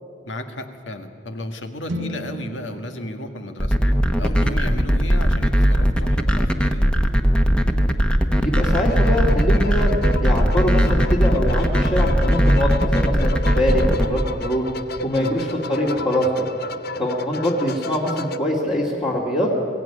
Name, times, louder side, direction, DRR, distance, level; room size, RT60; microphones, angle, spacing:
voice 1, 0.2-3.8 4.2-6.9 15.2-15.5, left 1 dB, 75° left, 6 dB, 1.9 m, -33 dB
sound 1, 1.9-5.9, equal, 85° right, 1.4 m, -37 dB
sound 2, 3.6-14.1, equal, 5° left, 1.1 m, -18 dB
voice 2, 8.4-9.9 10.2-14.6 15.0-16.5 17.0-19.5, equal, 30° left, -5 dB, 2.4 m, -23 dB
sound 3, 8.5-18.4, left 2 dB, 55° left, 0.8 m, -33 dB
23.0 x 16.0 x 9.9 m, 2.7 s
head